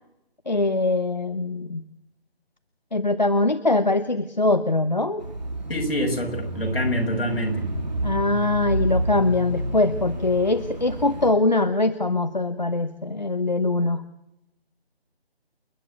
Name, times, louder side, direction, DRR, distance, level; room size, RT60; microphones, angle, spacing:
voice 1, 0.5-1.8 2.9-5.2 8.0-14.0, left 2 dB, 45° left, 11 dB, 0.9 m, -22 dB
Bicycle / Mechanisms, 5.2-11.3, right 1 dB, 40° right, 3.5 m, -29 dB
voice 2, 5.7-7.7, left 1 dB, 60° left, 2 dB, 6.6 m, -26 dB
29.0 x 11.0 x 9.5 m, 0.84 s
figure-of-eight pair, 180°, 32 cm